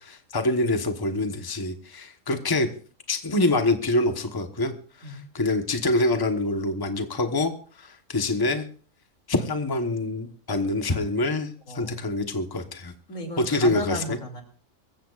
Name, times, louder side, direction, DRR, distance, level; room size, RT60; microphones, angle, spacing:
voice 1, 0.0-2.7 3.1-4.7 5.0-7.5 7.8-8.6 9.3-12.9 13.4-14.2, left 2 dB, 20° left, 6 dB, 1.1 m, -25 dB
voice 2, 11.7-12.1 13.1-14.4, equal, 80° left, 3 dB, 3.3 m, -34 dB
24.5 x 14.5 x 2.5 m, 0.42 s
omnidirectional pair, 1.3 m